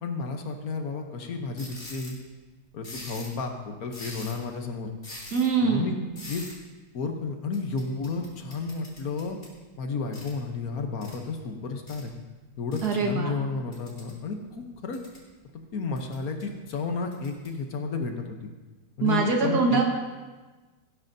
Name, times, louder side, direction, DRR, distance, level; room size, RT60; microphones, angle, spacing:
voice 1, 0.0-2.1 2.7-4.9 5.6-5.9 6.3-6.4 6.9-9.4 9.8-12.1 12.6-15.0 15.7-18.5 19.0-19.8, left 4 dB, 60° left, 4 dB, 1.4 m, -32 dB
sound 1, 1.6-2.2 2.8-3.4 3.9-4.5 5.0-5.5 6.1-6.5 7.5-9.5 10.1-10.3 11.0-11.1 11.9-12.0 12.7-12.9 13.7-14.2 14.7-15.2 15.9-16.4 17.1-17.5, left 1 dB, 40° left, 2.7 m, -43 dB
voice 2, 5.3-6.1 12.8-13.3 19.0-19.8, right 4 dB, 70° right, 1 dB, 1.9 m, -24 dB
17.0 x 9.6 x 2.7 m, 1.3 s
omnidirectional pair, 1.8 m